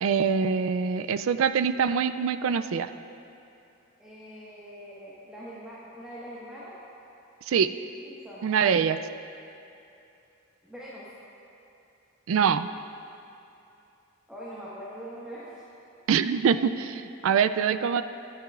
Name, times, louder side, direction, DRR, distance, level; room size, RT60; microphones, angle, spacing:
voice 1, 0.0-2.9 7.5-7.7 8.4-9.0 12.3-12.7 16.1-18.0, right 6 dB, 80° right, 11 dB, 0.4 m, -24 dB
voice 2, 4.0-6.8 8.1-8.5 10.6-11.1 14.3-15.6, equal, 5° right, -9 dB, 1.4 m, -42 dB
21.5 x 9.7 x 2.4 m, 2.7 s
head